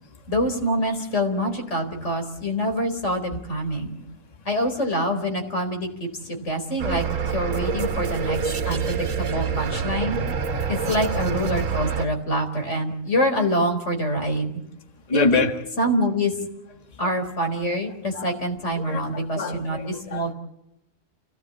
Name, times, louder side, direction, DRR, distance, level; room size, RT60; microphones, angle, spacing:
voice 1, 0.3-4.0 4.4-5.9 6.2-7.0 7.3-8.4 8.7-10.2 10.7-14.5 15.1-15.5 15.8-16.3 17.0-19.8 20.1-20.3, equal, 65° left, 4 dB, 4.6 m, -25 dB
sound 1, 6.8-12.1, right 6 dB, 85° right, 1.6 m, -26 dB
voice 2, 15.1-15.6 17.2-17.3 18.1-18.3 18.8-20.3, left 3 dB, 30° left, 2 dB, 1.8 m, -25 dB
28.5 x 18.0 x 8.6 m, 0.81 s
omnidirectional pair, 1.3 m